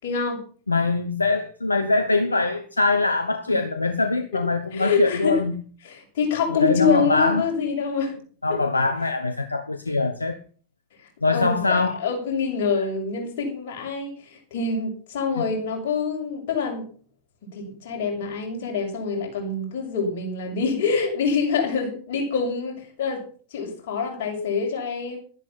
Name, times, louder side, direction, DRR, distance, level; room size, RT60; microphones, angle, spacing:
voice 1, 0.0-0.4 3.5-3.6 4.3-4.4 4.7-5.4 5.8-8.1 8.5-8.6 11.3-16.9 17.5-25.2, left 5 dB, 55° left, 6.6 m, -26 dB
voice 2, 0.7-5.6 6.6-7.4 8.4-10.4 11.2-12.0 15.4-15.5, left 3 dB, 80° left, 1.1 m, -23 dB
13.0 x 10.5 x 5.8 m
figure-of-eight pair, 90°, 0 cm